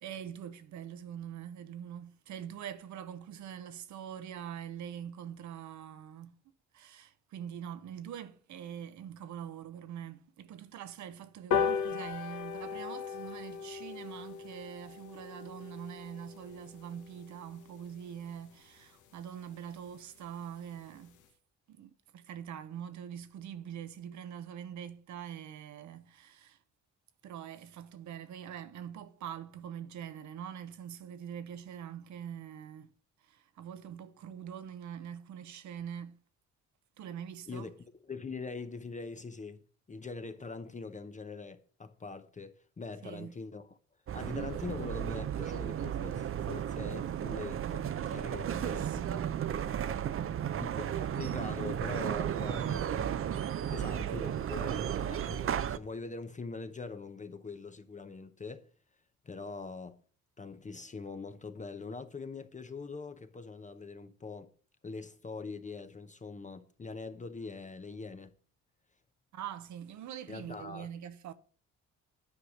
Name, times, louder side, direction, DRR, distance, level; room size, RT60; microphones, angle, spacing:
voice 1, 0.0-6.4 6.7-21.2 21.7-26.6 27.2-32.9 33.2-36.2 37.0-37.7 43.0-43.4 48.4-49.4 50.1-50.6 50.9-51.2 53.8-54.0 69.3-71.3, right 9 dB, 70° right, 0.8 m, -44 dB
sound 1, 11.5-18.3 18.7-18.8 19.1-19.2 19.5-19.6 19.9-20.0 20.2-20.5 20.9-21.0, left 7 dB, 80° left, 1.2 m, -37 dB
voice 2, 38.1-39.6 39.9-43.6 44.1-49.2 50.6-53.1 53.7-58.7 59.2-60.0 60.4-64.5 64.8-68.3 70.3-70.9, left 4 dB, 25° left, 0.7 m, -43 dB
sound 2, 44.1-55.8, right 9 dB, 45° right, 0.6 m, -34 dB
9.6 x 4.8 x 6.3 m
cardioid pair, 90°, 30 cm